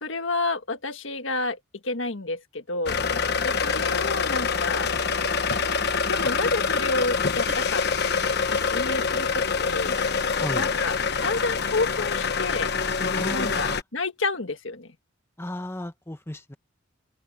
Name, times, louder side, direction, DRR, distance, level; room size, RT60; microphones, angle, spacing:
voice 1, 0.0-1.6 1.8-3.1 3.4-4.9 6.1-10.0 10.6-10.9 11.2-12.7 13.3-14.9, left 3 dB, 70° left, 1.7 m, -30 dB
sound 1, 2.9-13.8, left 5 dB, 55° left, 1.2 m, -25 dB
Cough, 4.9-6.3 6.7-6.9 7.5-7.7 8.5-8.7 9.8-10.1, right 4 dB, 40° right, 5.7 m, -46 dB
voice 2, 10.4-10.7 13.1-13.8 15.4-16.5, left 1 dB, 10° left, 0.9 m, -35 dB
head